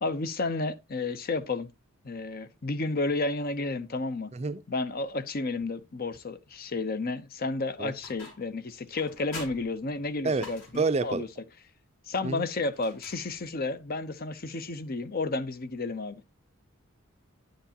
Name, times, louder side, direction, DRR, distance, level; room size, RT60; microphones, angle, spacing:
voice 1, 0.0-1.7 2.0-4.3 4.7-11.3 12.1-16.2, left 3 dB, 45° left, 0.7 m, -32 dB
sound 1, 8.0-8.6 9.0-11.1 12.7-13.7, left 2 dB, 65° left, 4.6 m, -46 dB
voice 2, 10.7-11.2 12.2-12.5, right 4 dB, 30° right, 0.5 m, -28 dB
10.0 x 7.9 x 2.8 m
head